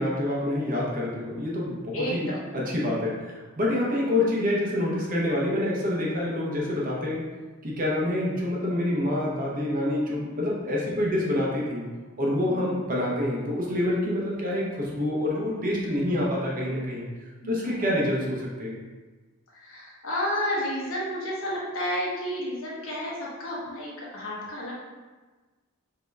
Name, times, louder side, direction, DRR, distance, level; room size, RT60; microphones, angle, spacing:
voice 1, 0.0-2.3 2.5-7.3 7.6-11.9 12.2-17.1 17.5-18.8, left 1 dB, 40° right, -4 dB, 0.8 m, -27 dB
voice 2, 1.9-2.4 10.3-10.6 12.4-12.6 15.9-16.3 17.4-17.9 19.5-24.7, equal, 65° left, -5 dB, 1.1 m, -32 dB
5.2 x 2.9 x 2.3 m, 1.3 s
head